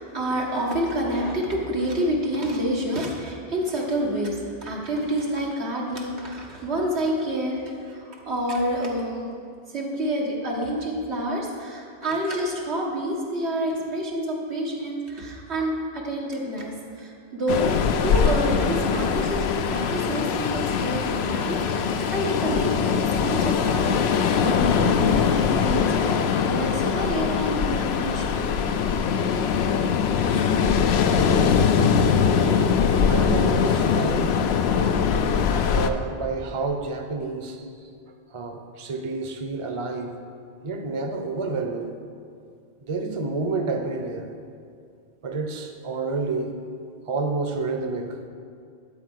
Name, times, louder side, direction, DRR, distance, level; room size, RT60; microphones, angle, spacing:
voice 1, 0.0-9.3 9.7-28.4, equal, 90° right, -2 dB, 2.0 m, -28 dB
Ocean, 17.5-35.9, left 6 dB, 75° left, 0.8 m, -22 dB
voice 2, 31.7-32.0 33.0-34.4 35.7-37.7 38.3-40.2 40.6-41.9 42.8-44.3 45.2-46.5 47.1-48.2, right 3 dB, 35° right, 5 dB, 0.8 m, -29 dB
12.0 x 4.6 x 8.2 m, 2.3 s
omnidirectional pair, 1.1 m